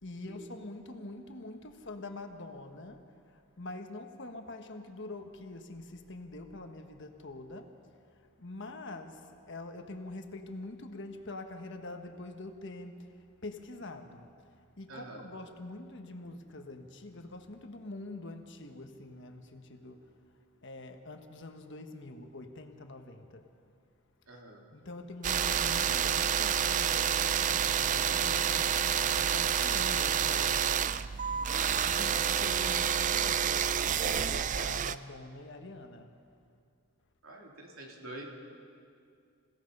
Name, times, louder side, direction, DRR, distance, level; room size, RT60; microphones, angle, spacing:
voice 1, 0.0-7.7 8.1-13.1 13.4-14.3 14.5-20.1 20.6-23.5 24.7-31.2 31.8-36.1, left 2 dB, 55° left, 5 dB, 1.4 m, -45 dB
voice 2, 14.9-15.3 24.3-24.6 37.2-38.2, right 1 dB, 70° right, -1 dB, 3.5 m, -46 dB
sound 1, 25.2-34.9, right 8 dB, 35° right, 0.4 m, -28 dB
28.0 x 17.0 x 5.5 m, 2.4 s
head